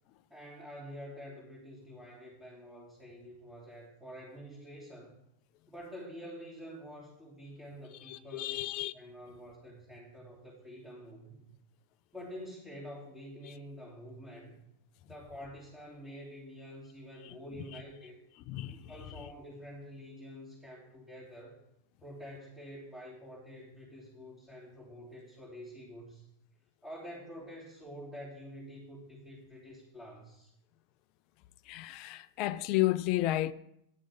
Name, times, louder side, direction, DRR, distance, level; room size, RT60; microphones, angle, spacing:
voice 1, 0.3-5.2 5.7-8.6 8.9-11.5 12.1-14.6 15.0-18.2 18.7-21.6 22.0-26.2 26.8-30.5, equal, 10° right, 3.1 m, -48 dB
voice 2, 8.0-8.9 13.4-13.5 17.2-17.3 18.5-18.9 31.7-33.5, left 16 dB, 40° left, 0.4 m, -32 dB
9.6 x 6.2 x 7.0 m
figure-of-eight pair, 90°, 0 cm